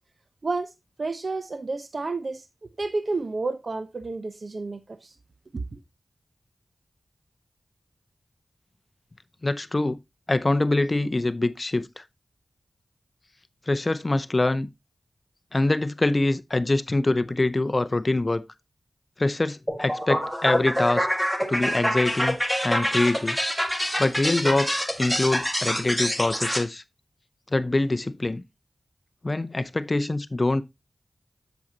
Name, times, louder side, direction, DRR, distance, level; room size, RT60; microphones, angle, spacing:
voice 1, 1.0-2.4 2.8-5.1 5.5-5.8, right 3 dB, 55° right, 0.8 m, -30 dB
voice 2, 9.4-10.0 10.3-12.0 13.7-14.7 15.5-18.4 19.2-21.1 21.5-22.4 22.6-23.4 24.0-26.8 27.5-28.4 29.2-30.6, left 2 dB, 35° left, 0.6 m, -24 dB
sound 1, 19.7-26.6, equal, 5° right, 1.8 m, -26 dB
8.0 x 7.2 x 2.8 m
wide cardioid pair, 65°, 0 cm